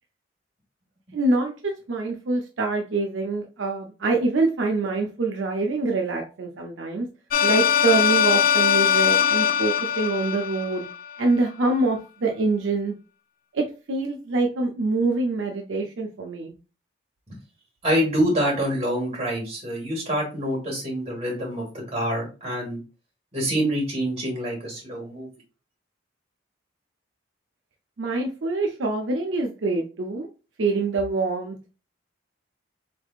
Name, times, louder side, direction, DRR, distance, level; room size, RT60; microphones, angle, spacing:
voice 1, 1.1-7.1 7.4-10.8 11.2-12.9 13.5-16.5 28.0-30.3 30.6-31.6, right 3 dB, 75° right, 2 dB, 0.6 m, -25 dB
sound 1, 7.3-11.2, left 8 dB, 45° left, 0.4 m, -21 dB
voice 2, 17.8-22.8 23.3-25.3, equal, 35° right, -2 dB, 1.8 m, -26 dB
4.1 x 3.4 x 2.4 m, 0.32 s
head